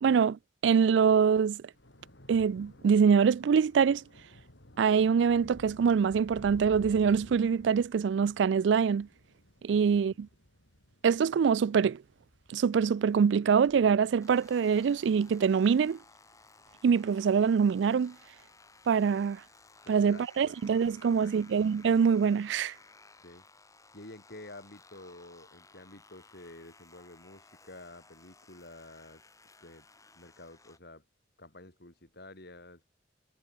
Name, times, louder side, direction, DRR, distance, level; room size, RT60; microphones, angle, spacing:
voice 1, 0.0-1.6 2.3-4.0 4.8-9.1 9.6-10.3 11.0-12.0 12.5-16.0 16.8-18.1 18.9-19.4 19.9-22.7, right 6 dB, 75° right, 0.3 m, -24 dB
Thunder / Rain, 1.2-17.8 18.1-18.6 18.8-19.0, left 1 dB, 80° left, 5.6 m, -55 dB
sound 1, 14.2-30.8, left 3 dB, 20° left, 4.1 m, -58 dB
voice 2, 19.9-20.6 20.9-21.5 23.2-23.4 23.9-29.2 29.6-29.9 30.1-31.1 31.4-32.8, left 2 dB, 60° left, 3.4 m, -50 dB
head